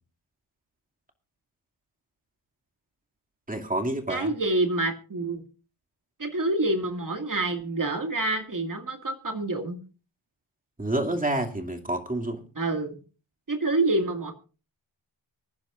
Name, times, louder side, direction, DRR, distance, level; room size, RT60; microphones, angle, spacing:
voice 1, 3.5-4.3 10.8-12.4, right 1 dB, 15° right, 2 dB, 2.5 m, -28 dB
voice 2, 4.1-5.4 6.2-9.8 12.6-13.0 13.5-14.3, right 2 dB, 40° right, 4 dB, 2.1 m, -27 dB
25.0 x 10.5 x 2.5 m, 0.34 s
wide cardioid pair, 100°, 50 cm